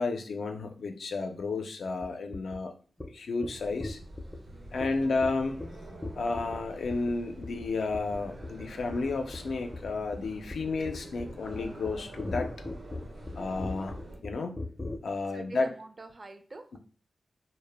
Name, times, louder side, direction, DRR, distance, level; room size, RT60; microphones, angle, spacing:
voice 1, 0.0-2.7 3.1-4.0 4.7-5.6 6.2-12.5 13.4-14.6 15.0-15.7, left 3 dB, 85° left, 5 dB, 0.3 m, -32 dB
sound 1, 2.0-2.1 2.3-2.6 3.0-3.1 3.4-3.5 3.8-4.4 4.8-4.9 5.2-5.3 5.6-5.7 6.0-6.6 6.9-7.1 7.4-7.7 7.9-8.2 8.4-8.7 8.9-15.0, left 2 dB, 20° left, 0.4 m, -37 dB
sound 2, 3.5-14.2, right 1 dB, 90° right, 1.0 m, -46 dB
voice 2, 4.7-5.2 15.3-16.8, right 2 dB, 45° right, 6 dB, 0.4 m, -46 dB
2.1 x 2.0 x 3.3 m, 0.41 s
cardioid pair, 65°, 0 cm